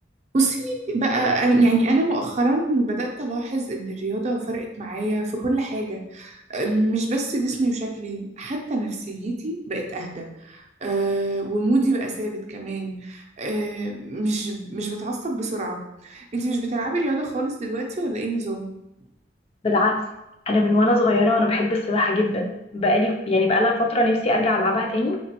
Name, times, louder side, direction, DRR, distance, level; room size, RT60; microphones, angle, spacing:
voice 1, 0.3-18.7, right 2 dB, 35° right, 1 dB, 0.5 m, -25 dB
voice 2, 19.6-20.0 20.5-25.2, left 2 dB, 30° left, 1 dB, 0.4 m, -21 dB
3.6 x 2.9 x 2.8 m, 0.89 s
head